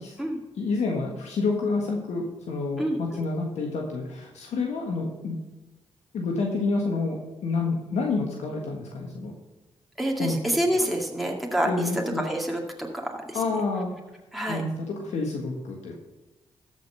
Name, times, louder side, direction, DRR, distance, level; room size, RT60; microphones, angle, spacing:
voice 1, 0.5-5.4 6.1-9.3 10.2-10.4 11.7-12.2 13.3-13.9 14.5-15.9, left 3 dB, 80° left, 0 dB, 1.5 m, -28 dB
voice 2, 2.8-3.2 10.0-13.4 14.3-14.6, right 1 dB, ahead, 0 dB, 2.1 m, -28 dB
13.0 x 5.2 x 5.6 m, 1.1 s
supercardioid pair, 50°, 11 cm